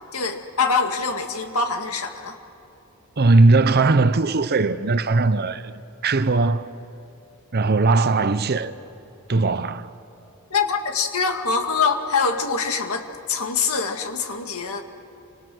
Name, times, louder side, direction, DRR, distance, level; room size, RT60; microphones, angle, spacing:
voice 1, 0.1-2.3 10.5-14.8, left 5 dB, 75° left, 2.1 m, -24 dB
voice 2, 3.2-5.7 6.0-6.7 7.5-8.7 9.3-9.9, right 3 dB, 45° right, 0.7 m, -19 dB
29.0 x 25.5 x 6.2 m
head